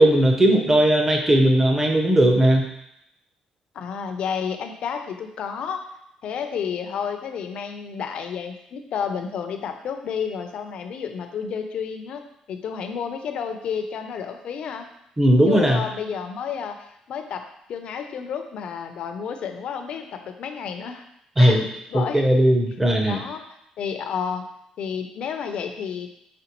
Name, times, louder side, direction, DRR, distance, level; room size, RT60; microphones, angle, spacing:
voice 1, 0.0-2.7 15.2-15.8 21.4-21.6 21.9-23.2, right 1 dB, 15° right, 2 dB, 0.6 m, -17 dB
voice 2, 3.7-5.9 6.2-12.2 12.5-14.9 15.5-21.0 21.4-21.6 21.9-22.3 23.0-24.5 24.8-26.1, left 7 dB, 55° left, 6 dB, 0.5 m, -31 dB
5.0 x 3.4 x 2.9 m, 0.77 s
cardioid pair, 155°, 2 cm